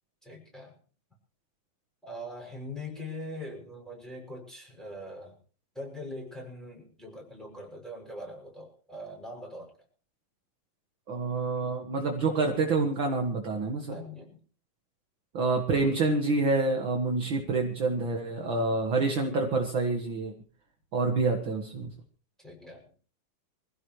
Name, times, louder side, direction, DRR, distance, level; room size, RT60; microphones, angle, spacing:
voice 1, 0.2-0.7 2.0-5.4 5.7-9.7 13.9-14.4 18.0-18.1 22.4-22.8, left 1 dB, ahead, -2 dB, 6.3 m, -42 dB
voice 2, 11.1-13.9 15.3-20.3 20.9-21.9, right 3 dB, 50° right, 2 dB, 1.6 m, -27 dB
25.5 x 16.0 x 3.2 m, 0.42 s
omnidirectional pair, 4.2 m